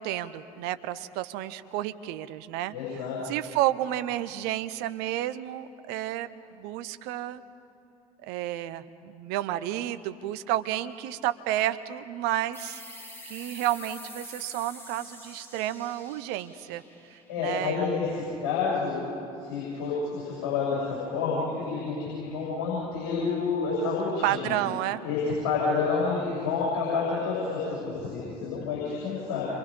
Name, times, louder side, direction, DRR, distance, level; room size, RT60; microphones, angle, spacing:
voice 1, 0.0-2.7 3.2-7.4 8.2-12.8 13.3-16.8 17.1-17.9 24.2-25.0, right 13 dB, 55° right, 13 dB, 0.8 m, -31 dB
voice 2, 2.7-3.2 17.3-19.1 19.4-24.5 25.0-25.2 25.4-29.5, left 4 dB, 60° left, -7 dB, 7.8 m, -29 dB
sound 1, 12.5-17.8, left 1 dB, 10° left, 4.9 m, -46 dB
28.5 x 24.0 x 5.2 m, 2.6 s
figure-of-eight pair, 60°, 19 cm